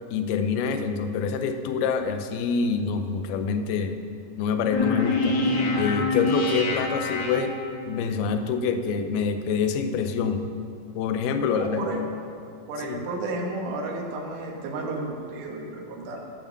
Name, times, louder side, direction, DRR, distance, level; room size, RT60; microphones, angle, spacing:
voice 1, 0.1-4.0 4.4-7.6 7.9-10.5 11.0-11.9 12.8-13.0, left 5 dB, 80° left, 7 dB, 2.6 m, -26 dB
sound 1, 4.7-8.0, left 2 dB, 65° left, 1.8 m, -26 dB
voice 2, 11.5-12.0 12.7-16.2, right 2 dB, 65° right, 0 dB, 2.4 m, -32 dB
13.5 x 6.1 x 7.0 m, 2.4 s
omnidirectional pair, 4.7 m